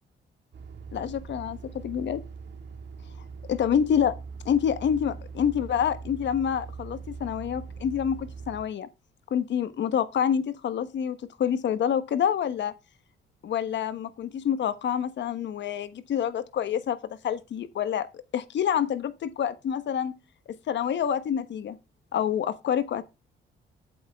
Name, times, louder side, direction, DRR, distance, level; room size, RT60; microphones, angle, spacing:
sound 1, 0.5-8.6, right 5 dB, 60° right, 2.1 m, -41 dB
voice 1, 0.9-2.2 3.5-4.1 4.4-8.9 9.3-12.7 13.4-17.0 17.2-20.1 20.5-21.8 22.1-23.0, left 8 dB, 65° left, 1.2 m, -27 dB
8.3 x 8.1 x 3.6 m
cardioid pair, 90°, 20 cm